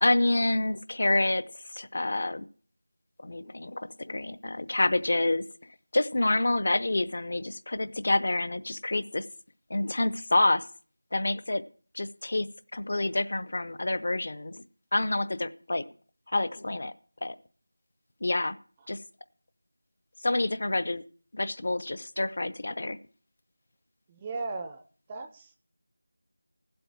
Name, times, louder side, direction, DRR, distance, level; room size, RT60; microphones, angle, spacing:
voice 1, 0.0-2.5 3.2-5.4 5.9-9.3 9.7-10.7 11.1-11.6 11.9-14.6 14.9-15.8 16.3-16.9 17.2-17.4 18.2-18.6 18.9-19.0 20.2-21.0 21.3-23.0, left 2 dB, 50° left, 15 dB, 0.5 m, -28 dB
voice 2, 24.1-24.8 25.1-25.6, right 3 dB, 15° right, 7 dB, 0.4 m, -36 dB
15.0 x 7.8 x 4.6 m, 0.43 s
figure-of-eight pair, 175°, 0 cm